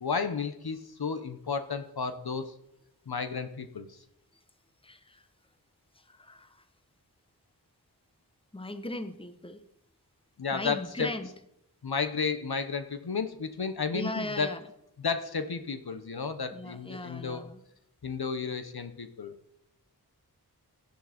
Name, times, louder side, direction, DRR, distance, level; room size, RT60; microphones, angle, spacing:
voice 1, 0.0-2.5 3.1-4.0 10.4-11.1 11.8-14.6 15.0-17.4 18.0-19.3, left 5 dB, 70° left, 9 dB, 1.1 m, -32 dB
voice 2, 4.8-5.3 5.9-6.6 8.5-9.6 10.5-11.3 13.9-14.6 16.5-17.6, left 1 dB, 15° left, 10 dB, 1.1 m, -38 dB
17.0 x 10.0 x 4.4 m, 0.78 s
wide cardioid pair, 55°, 39 cm